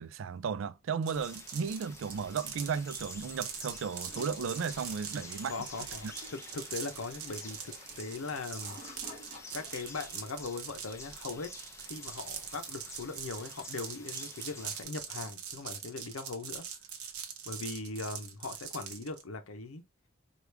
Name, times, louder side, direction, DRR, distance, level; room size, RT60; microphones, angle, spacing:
voice 1, 0.0-5.5 6.0-6.1, right 6 dB, 60° right, 0.3 m, -35 dB
sound 1, 1.0-19.2, right 8 dB, 85° right, 0.8 m, -43 dB
sound 2, 1.1-14.8, left 3 dB, 15° left, 0.6 m, -50 dB
Toilet flush, 4.1-10.1, left 1 dB, 30° left, 1.4 m, -52 dB
voice 2, 5.5-8.8 9.5-11.5 11.8-16.6 17.4-19.8, left 3 dB, 75° left, 0.7 m, -40 dB
4.8 x 2.4 x 3.2 m
head